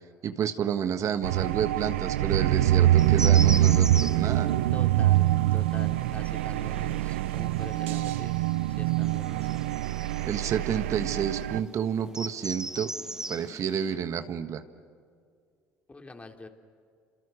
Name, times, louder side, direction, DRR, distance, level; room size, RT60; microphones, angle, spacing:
voice 1, 0.2-4.6 10.3-12.9 13.3-14.6, right 8 dB, 50° right, 9 dB, 1.4 m, -30 dB
sound 1, 1.2-11.6, right 13 dB, 85° right, 0.6 m, -24 dB
sound 2, 3.0-14.0, right 1 dB, 10° right, 0.9 m, -41 dB
voice 2, 4.7-9.6 15.9-16.5, left 3 dB, 20° left, 5 dB, 2.9 m, -45 dB
29.5 x 26.5 x 6.5 m, 2.2 s
hypercardioid pair, 70°, 7 cm